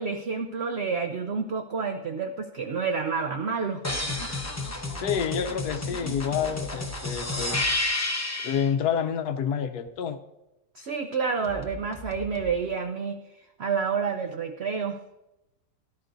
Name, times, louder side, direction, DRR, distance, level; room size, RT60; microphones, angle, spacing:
voice 1, 0.0-3.8 10.7-13.2 13.6-15.0, right 5 dB, 70° right, 5 dB, 0.6 m, -29 dB
sound 1, 3.8-8.7 11.4-12.5, left 2 dB, 15° left, 0.6 m, -31 dB
voice 2, 5.0-7.7 8.4-10.2, left 8 dB, 70° left, 9 dB, 1.2 m, -28 dB
17.5 x 11.5 x 2.6 m, 0.96 s
omnidirectional pair, 1.9 m